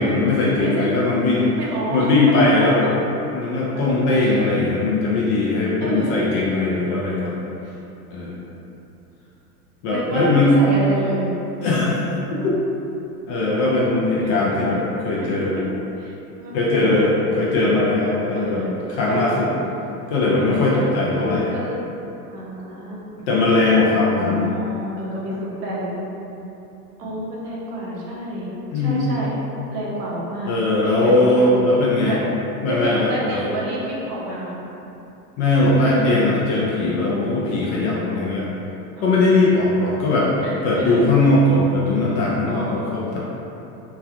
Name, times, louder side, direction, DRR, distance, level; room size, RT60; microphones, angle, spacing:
voice 1, 0.0-1.6 1.9-2.9 3.3-7.4 8.1-8.3 9.8-10.6 11.6-12.2 12.4-12.5 13.3-15.6 16.5-19.5 20.1-21.5 23.3-24.5 28.7-29.0 30.5-32.2 32.6-33.4 35.4-38.5 39.0-40.3 40.6-43.2, left 2 dB, 35° left, -5 dB, 0.4 m, -19 dB
voice 2, 0.6-0.9 1.6-2.1 2.6-2.7 4.1-4.5 5.8-6.1 8.2-8.3 9.9-12.5 14.2-14.5 16.0-17.2 18.3-18.8 19.1-19.2 20.8-21.7 22.3-23.1 24.0-26.0 27.0-28.5 28.7-29.3 29.7-30.5 30.8-31.6 32.1-32.2 32.7-34.6 35.8-36.2 37.1-37.3 39.0-39.1 40.4-41.2 42.5-43.1, right 1 dB, 70° right, -5 dB, 0.9 m, -29 dB
3.1 x 2.3 x 2.4 m, 2.9 s
hypercardioid pair, 95°, 48 cm